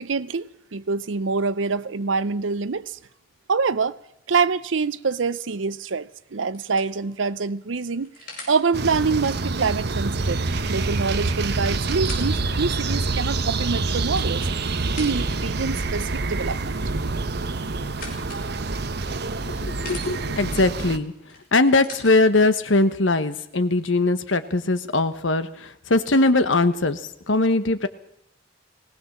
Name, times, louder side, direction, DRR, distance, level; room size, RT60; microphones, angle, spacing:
voice 1, 0.0-2.9 3.5-4.0 4.3-8.1 8.5-14.4 15.0-16.8, right 4 dB, 80° right, 0.7 m, -25 dB
sound 1, 6.5-8.6 10.6-10.7 11.0-11.1 11.6-12.4 13.0-13.1 13.9-15.5 17.1-18.5 19.2-20.1 21.3-22.1 23.1-23.2, left 3 dB, 50° left, 7.8 m, -42 dB
sound 2, 8.7-21.0, right 3 dB, 60° right, 1.1 m, -26 dB
voice 2, 19.5-21.1 21.5-27.0 27.3-27.9, left 2 dB, 80° left, 1.2 m, -21 dB
20.0 x 18.0 x 7.4 m
head